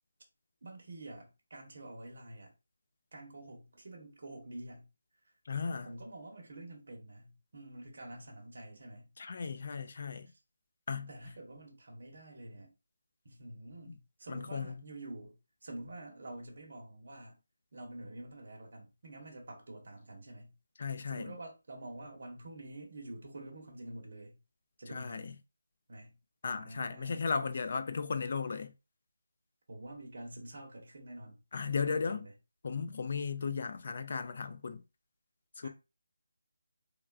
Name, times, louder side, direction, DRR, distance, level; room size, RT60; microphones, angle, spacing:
voice 1, 0.6-2.5 3.1-4.9 5.2-5.3 5.8-9.1 10.3-10.4 11.1-12.7 13.2-17.4 17.7-20.5 21.1-24.4 24.8-25.3 25.9-26.2 26.5-27.2 29.7-32.3 35.6-35.7, right 1 dB, 55° right, 0.8 m, -48 dB
voice 2, 5.5-5.9 9.2-10.3 10.9-11.1 13.9-14.0 14.3-14.8 20.8-21.3 24.9-25.3 26.4-28.7 31.5-32.2 32.6-34.8 35.6-35.7, left 5 dB, 45° left, 0.3 m, -35 dB
3.4 x 2.2 x 2.3 m
figure-of-eight pair, 170°, 0 cm